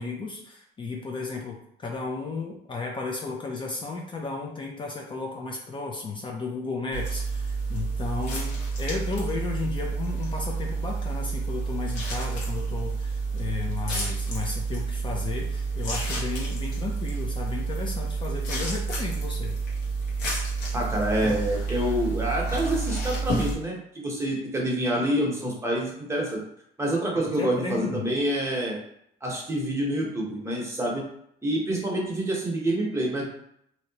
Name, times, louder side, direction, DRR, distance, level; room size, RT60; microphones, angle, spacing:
voice 1, 0.0-8.5 8.8-19.6 27.1-28.1, left 4 dB, 30° left, 0 dB, 0.6 m, -34 dB
sound 1, 6.9-23.5, right 4 dB, 85° left, 1.2 m, -29 dB
voice 2, 20.7-26.4 26.8-28.8 29.2-31.0 31.4-33.2, right 1 dB, 15° right, -2 dB, 1.1 m, -27 dB
3.1 x 2.8 x 2.8 m, 0.72 s
cardioid pair, 110°, 17 cm